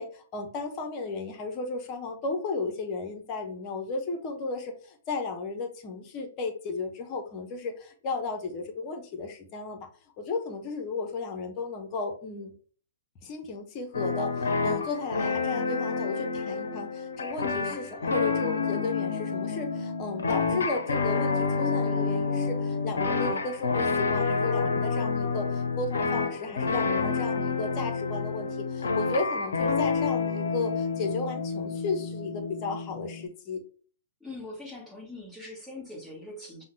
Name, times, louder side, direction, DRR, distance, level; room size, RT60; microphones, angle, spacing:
voice 1, 0.0-9.9 10.2-12.5 13.2-33.6, left 3 dB, 35° left, 4 dB, 0.9 m, -34 dB
sound 1, 13.9-33.2, left 4 dB, 70° left, 0.6 m, -29 dB
voice 2, 34.2-36.6, left 2 dB, ahead, -1 dB, 1.4 m, -42 dB
5.4 x 2.2 x 3.2 m, 0.43 s
figure-of-eight pair, 115°, 0 cm